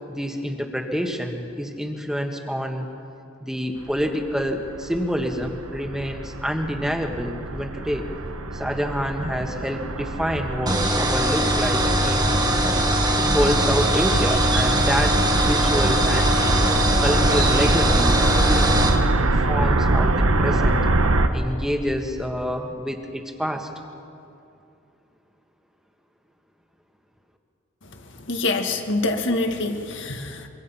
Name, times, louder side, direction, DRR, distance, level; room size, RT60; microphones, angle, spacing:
voice 1, 0.1-2.9 3.4-8.1 8.5-12.4 13.2-16.3 17.0-18.8 19.1-20.8 21.3-23.7, equal, ahead, 3 dB, 1.6 m, -27 dB
sound 1, 3.9-21.3, right 2 dB, 75° right, 1.3 m, -24 dB
sound 2, 10.7-19.0, right 1 dB, 20° right, 1.4 m, -22 dB
voice 2, 28.3-30.5, left 2 dB, 55° left, 4 dB, 1.9 m, -25 dB
25.0 x 24.0 x 5.8 m, 2.7 s
head